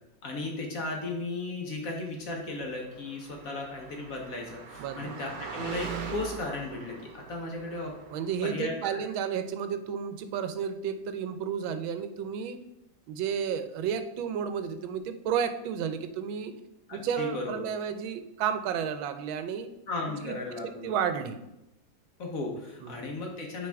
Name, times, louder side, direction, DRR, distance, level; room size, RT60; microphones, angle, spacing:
voice 1, 0.2-7.9 8.4-9.0 16.9-17.7 19.9-21.0 22.2-23.7, left 2 dB, 55° left, 0 dB, 1.2 m, -35 dB
Car passing by, 2.7-8.6, right 5 dB, 65° right, 1.2 m, -42 dB
voice 2, 4.8-5.1 8.1-12.6 13.1-16.5 16.9-19.7 20.2-20.3 20.6-21.4 22.8-23.0, right 7 dB, 90° right, 10 dB, 1.4 m, -32 dB
8.7 x 3.6 x 3.4 m, 0.91 s
omnidirectional pair, 2.1 m